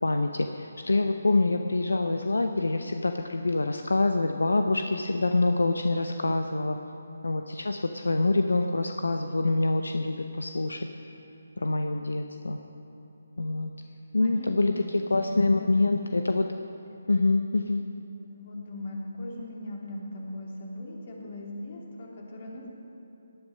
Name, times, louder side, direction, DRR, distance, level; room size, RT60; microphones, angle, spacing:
voice 1, 0.0-6.8 7.2-10.9 11.6-12.6 13.4-13.7 14.1-14.7 15.1-16.5 17.1-17.8, left 2 dB, 85° left, 6 dB, 0.7 m, -26 dB
voice 2, 14.2-16.2 18.3-22.7, left 1 dB, 50° left, -2 dB, 3.3 m, -39 dB
18.5 x 11.5 x 5.6 m, 3.0 s
figure-of-eight pair, 150°, 0 cm